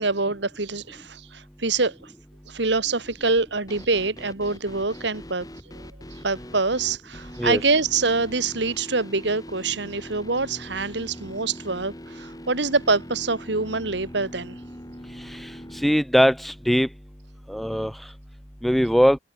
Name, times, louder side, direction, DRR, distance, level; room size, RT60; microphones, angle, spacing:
voice 1, 0.0-2.1 2.5-5.5 6.2-14.6, right 3 dB, 70° right, 2.0 m, -25 dB
sound 1, 3.7-15.9, equal, 20° left, 5.1 m, -42 dB
voice 2, 15.8-16.9 17.5-17.9 18.6-19.2, equal, ahead, 0.4 m, -20 dB
head